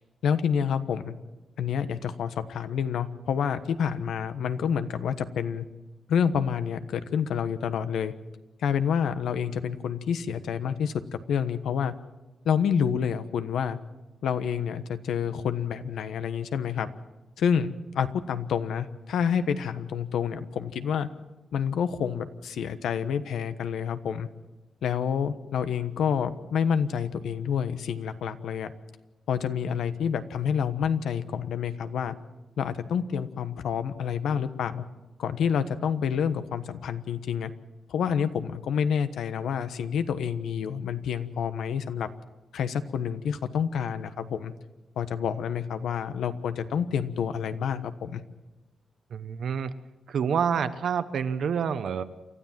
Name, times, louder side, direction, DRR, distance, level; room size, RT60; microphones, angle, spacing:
voice 1, 0.2-1.1 1.6-5.7 6.1-8.1 8.6-11.9 12.4-13.8 14.2-16.9 17.4-21.1 21.5-24.3 24.8-28.7 29.3-32.1 32.6-34.8 35.2-37.5 37.9-42.1 42.5-44.5 45.0-48.2, left 7 dB, 85° left, 11 dB, 1.2 m, -28 dB
voice 2, 49.1-49.7 50.1-52.0, right 7 dB, 65° right, 11 dB, 1.1 m, -27 dB
29.0 x 13.0 x 7.6 m, 1.1 s
cardioid pair, 125°, 0 cm